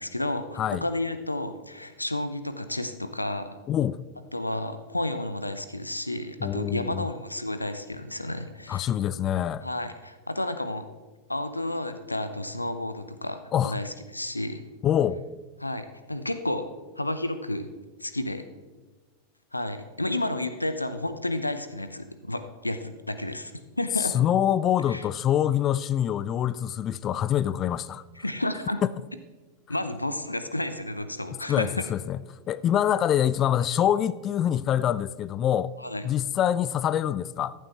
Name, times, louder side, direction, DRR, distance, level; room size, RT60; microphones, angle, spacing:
voice 1, 0.0-3.6 4.3-8.9 9.6-10.8 11.3-14.6 15.6-16.7 17.0-17.7 18.0-18.4 19.5-23.5 23.8-24.1 24.9-25.0 28.2-28.8 29.7-31.7 35.8-36.0, left 1 dB, 85° left, 0.7 m, -31 dB
voice 2, 3.7-4.0 6.4-7.0 8.7-9.7 13.5-13.8 14.8-15.2 24.0-28.0 31.5-32.2 32.5-35.7 36.0-37.5, left 10 dB, 30° left, 0.4 m, -25 dB
14.5 x 11.5 x 3.3 m
figure-of-eight pair, 90°, 0 cm